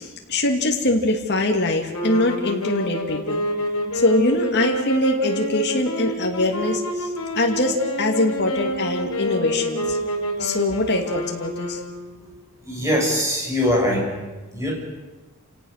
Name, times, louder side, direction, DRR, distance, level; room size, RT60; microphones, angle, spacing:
voice 1, 0.0-3.4 3.9-7.1 7.3-10.0 10.4-11.8, left 2 dB, 50° left, 1 dB, 2.6 m, -23 dB
sound 1, 1.9-12.3, equal, 75° left, 4.9 m, -28 dB
voice 2, 12.7-14.1 14.5-14.7, equal, 15° right, -1 dB, 6.9 m, -21 dB
29.0 x 17.5 x 6.7 m, 1.2 s
head